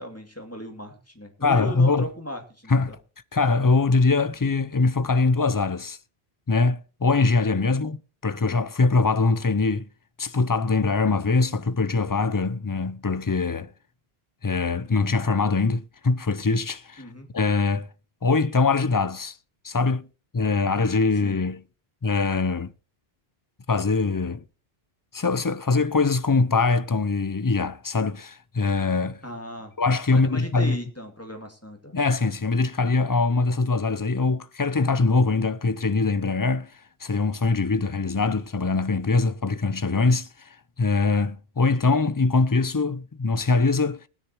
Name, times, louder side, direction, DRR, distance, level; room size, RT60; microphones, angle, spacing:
voice 1, 0.0-3.0 7.6-7.8 17.0-17.3 21.2-21.4 29.2-29.7 30.1-32.0, equal, 15° left, 2.4 m, -37 dB
voice 2, 1.4-2.1 2.7-2.9 3.3-6.0 6.5-9.9 10.2-13.7 14.4-17.0 17.3-17.9 18.2-19.4 19.6-20.1 20.3-21.6 22.0-22.7 23.7-24.4 25.1-29.2 29.8-30.8 31.9-36.7 37.0-44.0, left 3 dB, 30° left, 0.4 m, -23 dB
20.0 x 10.0 x 3.0 m
omnidirectional pair, 1.0 m